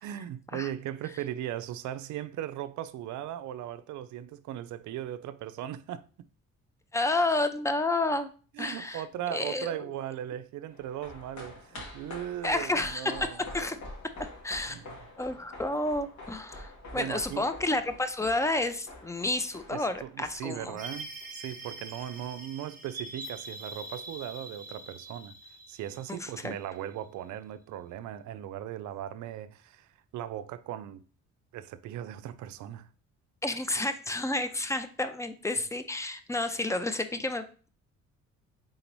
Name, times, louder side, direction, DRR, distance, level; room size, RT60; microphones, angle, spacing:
voice 1, 0.0-6.3 8.5-13.8 14.7-15.0 16.9-17.5 19.7-25.3 25.7-31.0 31.5-32.9, right 11 dB, 75° right, 0.4 m, -38 dB
voice 2, 6.9-8.3 8.6-9.0 9.3-9.7 12.4-13.8 14.4-14.8 15.2-20.8 26.1-26.5 33.4-37.7, left 2 dB, 10° left, 0.4 m, -30 dB
sound 1, 10.7-21.3 21.5-21.6, left 2 dB, 70° left, 1.7 m, -46 dB
sound 2, 20.8-27.0, right 2 dB, 25° right, 0.9 m, -44 dB
3.9 x 3.8 x 3.0 m
cardioid pair, 90°, 30 cm